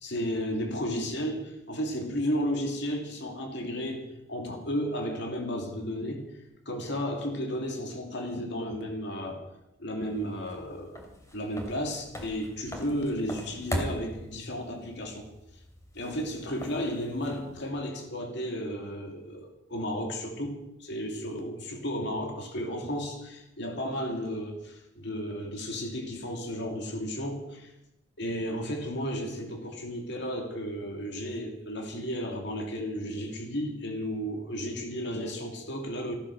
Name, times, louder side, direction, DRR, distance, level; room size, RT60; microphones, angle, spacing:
voice 1, 0.0-6.2 6.7-9.4 9.8-11.0 11.3-15.3 15.9-27.7 28.2-36.2, equal, 60° left, 3 dB, 2.5 m, -33 dB
sound 1, 10.0-17.7, equal, 15° left, 2.9 m, -40 dB
15.0 x 14.0 x 6.4 m, 0.90 s
head